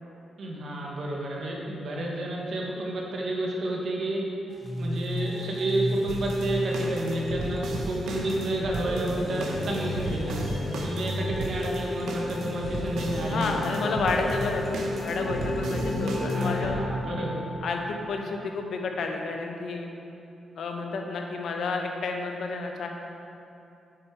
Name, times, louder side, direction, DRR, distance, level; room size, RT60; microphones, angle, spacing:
voice 1, 0.4-4.2 4.8-13.9 16.3-17.5, right 1 dB, 50° right, -2 dB, 1.4 m, -30 dB
sound 1, 4.5-16.5, left 1 dB, 20° left, 0.9 m, -34 dB
sound 2, 6.1-16.8, right 2 dB, 75° right, 0.9 m, -36 dB
sound 3, 7.5-18.1, left 2 dB, 30° right, 1.7 m, -35 dB
voice 2, 13.3-16.8 17.6-19.9 20.6-22.9, left 3 dB, 55° left, 3 dB, 0.9 m, -30 dB
8.7 x 6.4 x 4.8 m, 2.7 s
wide cardioid pair, 170°, 0 cm